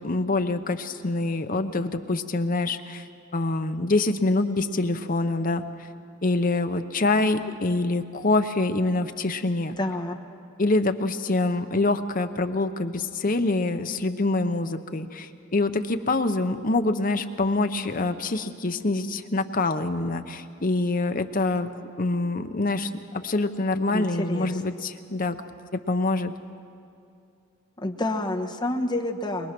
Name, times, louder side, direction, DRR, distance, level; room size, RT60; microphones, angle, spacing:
voice 1, 0.0-3.1 3.3-5.9 6.2-9.8 10.6-21.7 22.0-25.4 25.7-26.3, left 2 dB, 40° left, 8 dB, 0.8 m, -25 dB
voice 2, 9.8-10.1 23.9-24.5 27.8-29.5, left 1 dB, 20° left, 2 dB, 1.2 m, -28 dB
23.0 x 20.5 x 6.0 m, 2.5 s
head